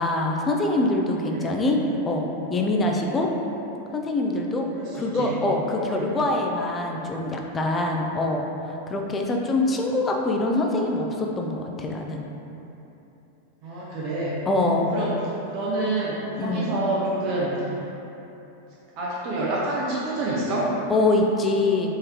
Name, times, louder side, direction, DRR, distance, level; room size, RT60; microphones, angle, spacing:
voice 1, 0.0-1.8 2.1-3.3 3.9-4.7 4.9-8.4 8.9-12.2 14.5-14.9 16.4-16.7 20.9-21.9, left 2 dB, 20° left, 1 dB, 0.4 m, -24 dB
voice 2, 4.7-5.3 5.8-6.1 13.6-14.4 14.9-15.2 15.5-17.8 19.0-20.7, right 2 dB, 40° right, -6 dB, 0.5 m, -27 dB
3.7 x 3.1 x 2.8 m, 3.0 s
figure-of-eight pair, 90°, 0 cm